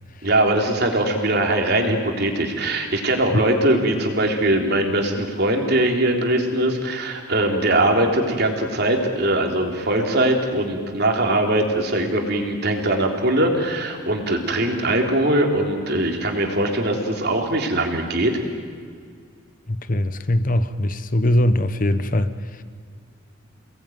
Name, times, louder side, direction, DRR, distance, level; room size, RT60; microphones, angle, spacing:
voice 1, 0.2-18.4, right 1 dB, 50° right, 2 dB, 3.6 m, -21 dB
voice 2, 19.7-22.6, left 1 dB, 40° left, 12 dB, 1.0 m, -21 dB
29.5 x 20.0 x 9.4 m, 2.1 s
head